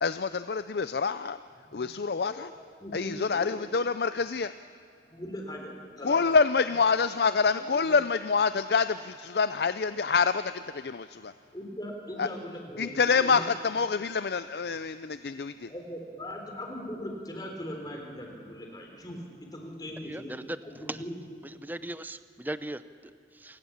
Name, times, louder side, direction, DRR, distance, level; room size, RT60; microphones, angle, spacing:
voice 1, 0.0-1.4 1.7-2.5 2.9-4.5 6.0-11.3 12.2-12.3 12.8-15.7, left 5 dB, 65° left, 12 dB, 0.5 m, -26 dB
voice 2, 2.8-3.7 5.1-6.3 7.7-8.0 11.5-12.9 13.2-13.4 15.7-20.3 20.6-21.1, equal, 20° left, 2 dB, 3.8 m, -40 dB
voice 3, 20.0-20.6 20.9-21.0 21.6-23.6, right 1 dB, 10° right, 13 dB, 0.6 m, -38 dB
28.5 x 19.0 x 7.2 m, 2.4 s
head